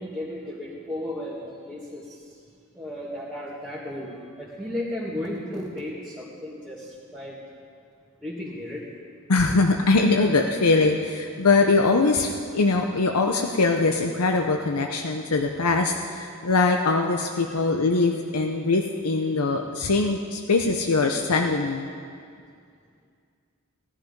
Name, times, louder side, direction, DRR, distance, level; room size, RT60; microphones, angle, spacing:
voice 1, 0.0-2.2 2.8-4.1 4.4-7.4 8.2-8.9 18.6-18.7 19.3-19.4, left 1 dB, 5° right, -8 dB, 1.9 m, -34 dB
voice 2, 9.3-21.9, left 3 dB, 85° left, 4 dB, 0.7 m, -22 dB
17.0 x 11.0 x 5.3 m, 2.3 s
head